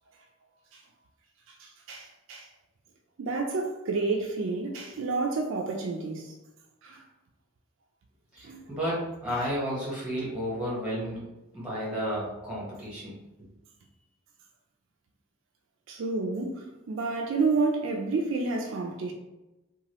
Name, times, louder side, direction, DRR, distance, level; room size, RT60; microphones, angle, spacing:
voice 1, 1.6-2.5 3.2-6.3 6.8-7.0 8.4-8.8 15.9-19.1, right 3 dB, 60° right, 0.3 m, -30 dB
voice 2, 8.3-11.2 11.5-13.2, equal, 5° right, 1.0 m, -32 dB
2.8 x 2.3 x 2.9 m
head